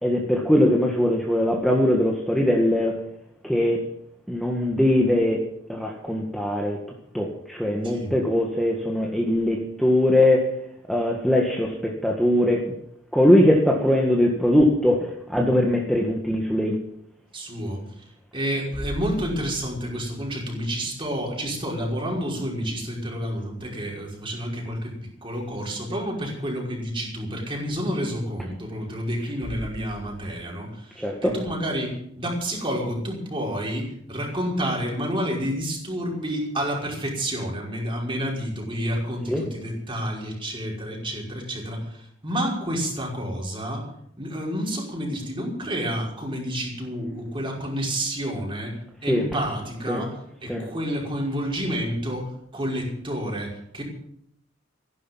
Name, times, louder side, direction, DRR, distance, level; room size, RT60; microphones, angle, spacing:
voice 1, 0.0-3.0 3.4-3.8 4.3-6.8 7.1-12.7 13.1-16.8 31.0-31.3 39.3-39.4 49.1-49.2 49.9-50.0 50.5-50.6, left 1 dB, ahead, -1 dB, 1.8 m, -21 dB
voice 2, 7.8-8.2 17.3-17.8 18.3-25.0 25.2-43.9 44.2-53.8, equal, 25° right, -2 dB, 5.5 m, -29 dB
15.0 x 12.0 x 7.4 m, 0.73 s
head